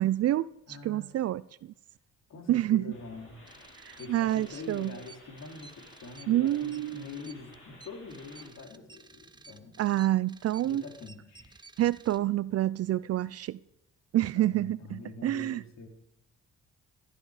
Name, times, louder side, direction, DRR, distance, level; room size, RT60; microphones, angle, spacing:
voice 1, 0.0-1.7 2.5-2.9 3.8-4.9 6.3-7.0 9.8-10.8 11.8-13.6 14.1-15.6, right 14 dB, 55° right, 0.4 m, -28 dB
voice 2, 0.7-1.1 2.3-3.4 4.0-9.8 10.6-11.7 14.2-15.9, left 4 dB, 65° left, 3.2 m, -45 dB
sound 1, 2.9-8.5, left 2 dB, 45° left, 5.2 m, -54 dB
sound 2, 3.5-12.2, right 4 dB, 15° right, 0.8 m, -54 dB
16.5 x 12.0 x 4.9 m
cardioid pair, 90°, 30 cm